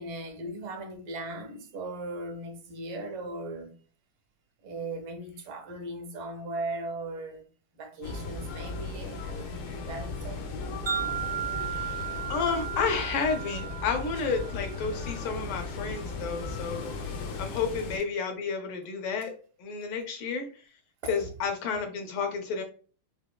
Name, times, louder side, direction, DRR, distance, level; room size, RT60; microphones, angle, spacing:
voice 1, 0.0-3.8 4.6-7.5 7.7-10.7 21.0-21.2, right 2 dB, 80° right, 1.6 m, -38 dB
sound 1, 8.0-18.0, left 4 dB, 70° left, 1.4 m, -36 dB
Wind chime, 10.9-15.1, right 9 dB, 60° right, 0.6 m, -35 dB
voice 2, 11.7-16.9 17.4-19.3 19.6-20.6 21.1-22.6, left 5 dB, 85° left, 1.6 m, -31 dB
4.6 x 2.2 x 2.2 m
omnidirectional pair, 2.3 m